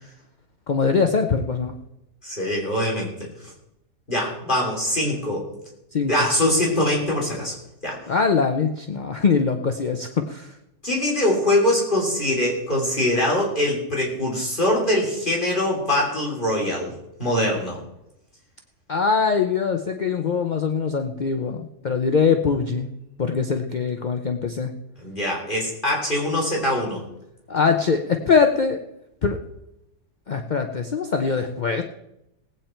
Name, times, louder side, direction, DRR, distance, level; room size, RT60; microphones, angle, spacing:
voice 1, 0.7-1.7 5.9-6.1 8.1-10.5 18.9-22.9 23.2-24.7 27.5-28.8 29.2-29.4 30.3-31.8, left 5 dB, 50° left, 5 dB, 0.5 m, -22 dB
voice 2, 2.2-3.1 4.1-5.5 6.1-7.5 7.8-8.0 10.8-16.9 17.2-17.8 25.0-27.0, left 1 dB, 30° left, -3 dB, 3.2 m, -23 dB
18.5 x 8.8 x 4.4 m, 0.86 s
omnidirectional pair, 1.8 m